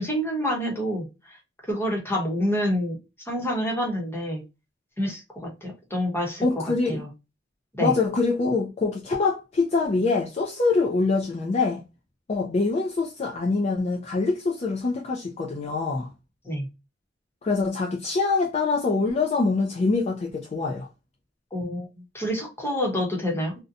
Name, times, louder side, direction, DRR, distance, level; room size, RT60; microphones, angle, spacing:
voice 1, 0.0-1.4 1.7-3.0 3.3-4.4 5.0-6.4 6.8-7.1 7.8-7.9 16.4-16.7 21.5-23.6, equal, 15° left, 0.9 m, -27 dB
voice 2, 6.4-7.0 7.8-11.8 12.3-16.1 17.4-20.9, left 3 dB, 35° left, 0.4 m, -24 dB
2.6 x 2.2 x 2.5 m
head